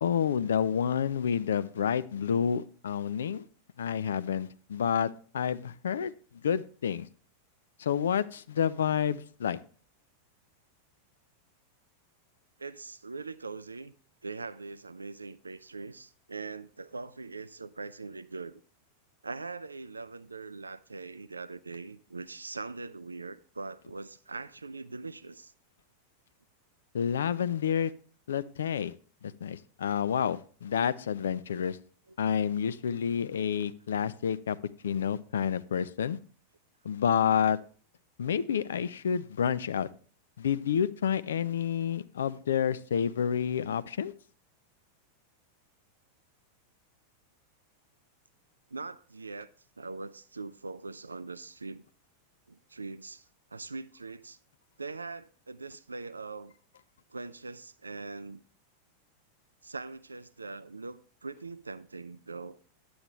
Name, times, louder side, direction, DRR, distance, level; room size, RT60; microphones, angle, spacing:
voice 1, 0.0-3.4 3.8-6.1 6.4-7.1 7.8-9.6 26.9-27.9 28.3-28.9 29.2-31.8 32.2-34.6 34.8-36.2 36.8-37.6 38.2-39.9 40.4-44.1, left 8 dB, 65° left, 0.4 m, -29 dB
voice 2, 12.6-13.9 14.2-18.6 19.2-25.5 32.1-32.2 48.7-49.5 49.8-51.8 52.5-54.4 54.8-56.5 57.1-58.4 59.6-62.6, right 3 dB, 80° right, 0.3 m, -42 dB
9.7 x 7.9 x 3.2 m
figure-of-eight pair, 90°, 0 cm